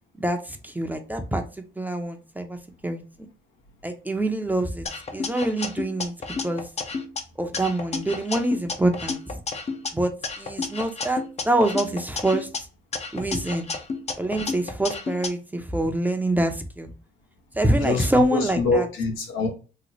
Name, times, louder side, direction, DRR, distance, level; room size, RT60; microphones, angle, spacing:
voice 1, 0.2-1.4 1.8-3.0 3.8-4.9 5.1-6.1 6.4-6.7 7.4-9.4 9.9-12.5 13.1-13.7 14.2-16.9 17.5-18.9, right 1 dB, 10° right, 5 dB, 0.6 m, -25 dB
sound 1, 4.9-7.2 7.5-9.9 10.2-12.6 12.9-15.3, left 4 dB, 35° left, 0.6 m, -31 dB
voice 2, 17.7-19.5, left 3 dB, 90° left, 1 dB, 1.1 m, -25 dB
3.1 x 2.0 x 3.9 m, 0.34 s
cardioid pair, 90°, 20 cm